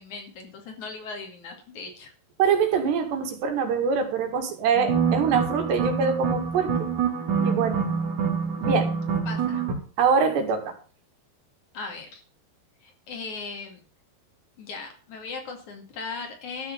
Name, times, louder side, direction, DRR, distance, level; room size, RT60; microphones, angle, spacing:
voice 1, 0.0-2.1 9.2-9.6 11.7-12.2 12.8-13.8 14.6-16.7, left 4 dB, 50° left, 3 dB, 3.4 m, -38 dB
voice 2, 2.4-6.9 7.4-7.8 8.6-8.9 10.0-10.7, right 6 dB, 90° right, 5 dB, 4.4 m, -24 dB
sound 1, 4.8-9.7, right 6 dB, 50° right, 4.0 m, -26 dB
13.5 x 6.9 x 7.2 m, 0.38 s
omnidirectional pair, 4.7 m